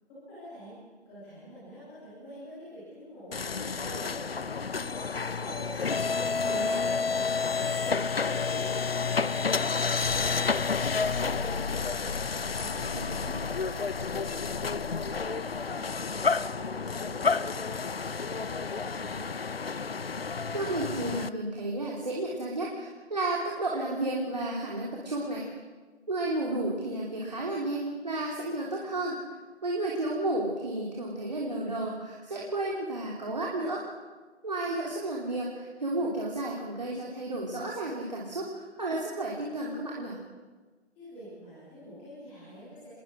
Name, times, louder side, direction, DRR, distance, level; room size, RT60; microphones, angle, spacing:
voice 1, 0.1-0.7 1.0-12.1 12.5-19.3 40.9-43.0, equal, 5° left, -11 dB, 3.4 m, -46 dB
sound 1, 3.3-21.3, left 5 dB, 60° left, 0.7 m, -30 dB
voice 2, 6.4-6.8 13.2-13.3 20.5-25.5 26.1-29.2 29.6-33.8 34.4-40.2, right 2 dB, 40° right, -3 dB, 3.4 m, -32 dB
26.5 x 22.0 x 6.3 m, 1.4 s
figure-of-eight pair, 180°, 34 cm